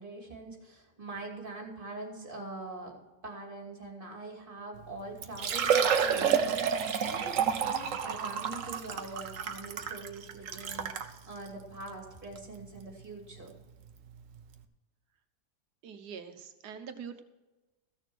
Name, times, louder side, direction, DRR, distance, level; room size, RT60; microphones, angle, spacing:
voice 1, 0.0-13.5, right 2 dB, 30° right, 1 dB, 2.7 m, -44 dB
Liquid, 4.8-4.9 5.2-11.1 11.8-11.9 12.4-12.5 14.1-14.2 14.4-14.5, right 7 dB, 60° right, 1.1 m, -29 dB
voice 2, 15.8-17.2, right 7 dB, 85° right, 8 dB, 1.6 m, -44 dB
15.0 x 6.8 x 6.2 m, 1.1 s
omnidirectional pair, 1.7 m